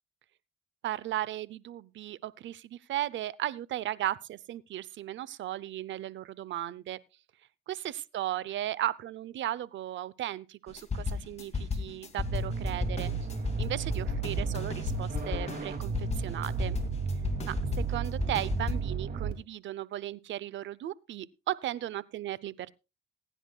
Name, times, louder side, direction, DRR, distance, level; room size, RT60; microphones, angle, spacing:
voice 1, 0.8-7.0 7.7-13.1 13.6-16.8 17.4-17.6 17.9-22.7, right 13 dB, 70° right, 0.7 m, -36 dB
sound 1, 10.7-18.7, left 5 dB, 35° left, 2.3 m, -34 dB
sound 2, 12.2-19.3, right 6 dB, 45° right, 2.4 m, -34 dB
20.5 x 10.0 x 2.3 m
cardioid pair, 90°, 20 cm